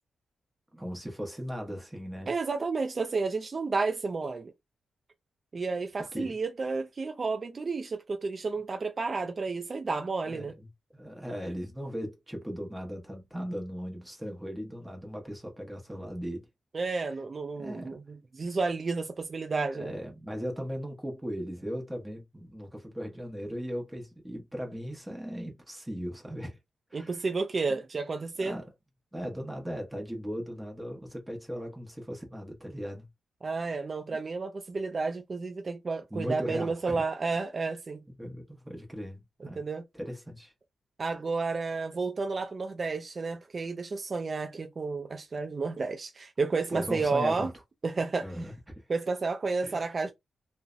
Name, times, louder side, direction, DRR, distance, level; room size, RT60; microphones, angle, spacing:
voice 1, 0.7-2.3 6.1-6.3 10.2-16.5 17.6-18.0 19.6-26.6 26.9-27.3 27.7-27.8 28.4-28.7 29.1-33.1 36.1-37.0 38.2-39.6 39.9-40.5 46.7-47.5 48.2-48.9 49.6-49.9, equal, 10° right, 0.7 m, -38 dB
voice 2, 2.3-4.5 5.5-10.5 16.7-19.9 26.9-28.6 33.4-38.0 39.4-39.8 41.0-47.5 47.8-48.3 48.9-50.1, right 4 dB, 40° right, 0.3 m, -31 dB
2.6 x 2.0 x 2.3 m
cardioid pair, 95°, 0 cm